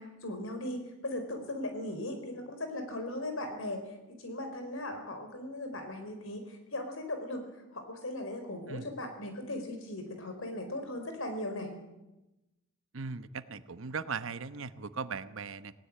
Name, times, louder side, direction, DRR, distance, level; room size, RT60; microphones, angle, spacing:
voice 1, 0.0-3.8 4.1-7.4 7.7-11.7, left 1 dB, 80° left, 6 dB, 4.6 m, -38 dB
voice 2, 12.9-15.7, right 5 dB, 75° right, 13 dB, 1.0 m, -38 dB
18.0 x 18.0 x 8.7 m, 0.99 s
head